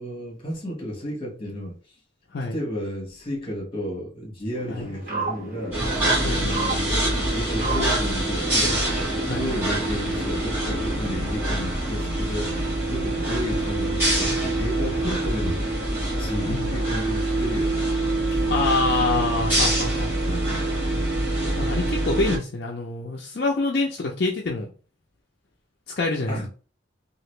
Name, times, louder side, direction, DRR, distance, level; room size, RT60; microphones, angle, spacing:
voice 1, 0.0-1.8 2.5-5.8 6.3-8.8 9.3-15.6 16.2-17.9 18.2-18.5 20.2-20.6 26.3-26.5, equal, 30° left, 1.3 m, -32 dB
sound 1, 3.1-3.6 8.0-18.2, left 1 dB, 65° right, 0.9 m, -39 dB
sound 2, 4.5-11.1, right 2 dB, 40° right, 1.5 m, -34 dB
sound 3, 5.7-22.4, right 1 dB, 10° right, 1.5 m, -25 dB
voice 2, 6.2-6.6 9.3-9.4 16.5-16.7 18.5-20.1 21.6-24.7 25.9-26.5, left 3 dB, 55° left, 0.5 m, -26 dB
2.9 x 2.4 x 3.1 m
head